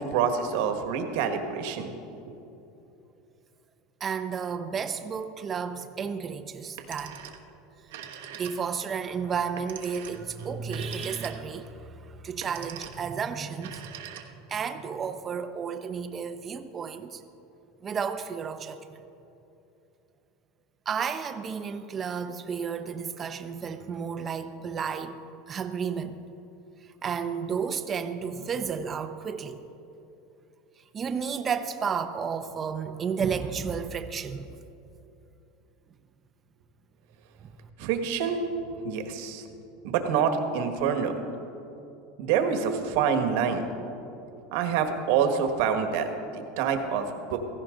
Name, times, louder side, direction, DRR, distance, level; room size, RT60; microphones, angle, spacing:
voice 1, 0.0-1.9 37.8-38.4 38.8-39.4 39.8-41.1 42.2-43.6 44.5-47.0 47.3-47.4, right 7 dB, 70° right, 6 dB, 1.5 m, -26 dB
voice 2, 4.0-7.2 8.3-13.9 14.5-17.2 17.8-19.0 20.9-25.2 25.5-26.2 27.0-29.6 30.9-34.5 37.4-37.5, right 6 dB, 25° right, 9 dB, 0.8 m, -32 dB
Telephone, 6.6-7.5 7.8-8.9 9.6-11.7 12.3-13.1 13.5-14.6, right 9 dB, 85° right, 1.2 m, -43 dB
16.5 x 15.0 x 3.9 m, 2.9 s
supercardioid pair, 135°, 0 cm